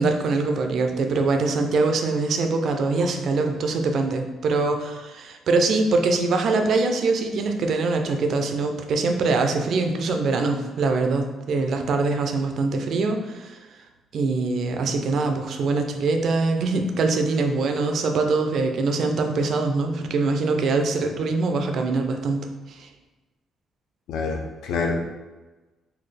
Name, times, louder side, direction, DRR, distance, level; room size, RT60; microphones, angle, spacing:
voice 1, 0.0-13.6 14.1-22.4 22.7-22.9, right 3 dB, 50° right, 5 dB, 0.4 m, -23 dB
voice 2, 24.1-25.0, left 4 dB, 80° left, 2 dB, 0.6 m, -26 dB
4.0 x 2.3 x 3.3 m, 1.2 s
cardioid pair, 160°, 0 cm